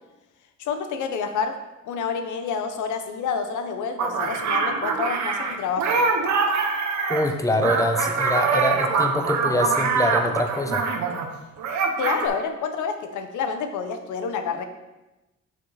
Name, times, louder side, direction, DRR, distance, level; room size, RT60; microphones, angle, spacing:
voice 1, 0.6-1.6 1.9-6.1 8.3-8.6 9.1-9.7 12.0-14.6, left 6 dB, 80° left, 7 dB, 0.9 m, -29 dB
sound 1, 4.0-11.3 11.6-12.3, right 4 dB, 70° right, 1.0 m, -24 dB
voice 2, 7.1-10.9, left 1 dB, 10° left, 5 dB, 0.9 m, -24 dB
6.3 x 5.9 x 4.2 m, 1.0 s
cardioid pair, 90°, 30 cm